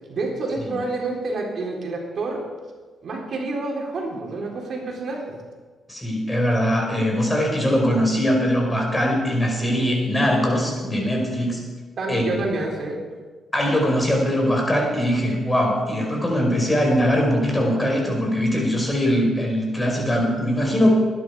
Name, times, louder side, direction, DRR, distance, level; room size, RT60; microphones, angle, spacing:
voice 1, 0.1-2.4 3.0-5.4 12.0-13.0, right 2 dB, 60° right, -1 dB, 3.9 m, -28 dB
voice 2, 5.9-11.6 12.1-12.4 13.5-20.9, equal, 15° left, 0 dB, 5.0 m, -21 dB
20.5 x 11.0 x 4.8 m, 1.4 s
cardioid pair, 80°, 0 cm